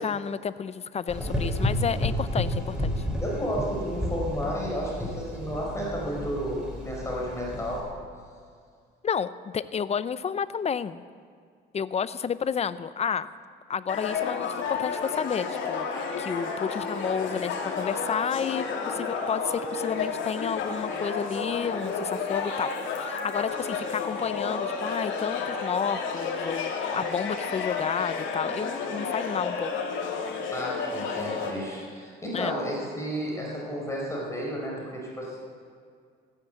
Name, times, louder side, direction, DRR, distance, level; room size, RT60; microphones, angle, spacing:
voice 1, 0.0-2.9 9.0-11.0 11.7-13.3 13.7-29.7 32.3-32.5, left 7 dB, 35° left, 15 dB, 0.6 m, -31 dB
Gurgling / Engine, 1.1-7.8, left 1 dB, 5° right, 4.1 m, -31 dB
voice 2, 3.2-7.8 30.5-35.4, equal, 15° left, -3 dB, 4.6 m, -32 dB
sound 1, 13.9-31.5, left 5 dB, 80° left, 2.6 m, -31 dB
15.5 x 9.8 x 7.9 m, 2.1 s
cardioid pair, 95°, 20 cm